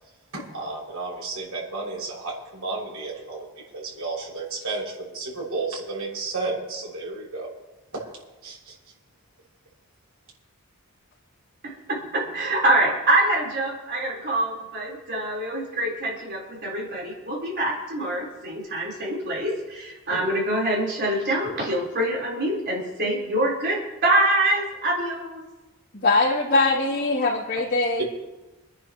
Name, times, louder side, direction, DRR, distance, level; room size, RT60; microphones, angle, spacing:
voice 1, 0.3-7.5 7.9-8.1 8.4-8.8 28.0-28.1, right 3 dB, 90° right, -4 dB, 6.3 m, -32 dB
voice 2, 11.6-25.4, right 1 dB, 55° right, -4 dB, 4.3 m, -25 dB
voice 3, 25.9-28.0, left 2 dB, 50° left, -10 dB, 3.1 m, -22 dB
28.0 x 10.5 x 3.1 m, 1.1 s
head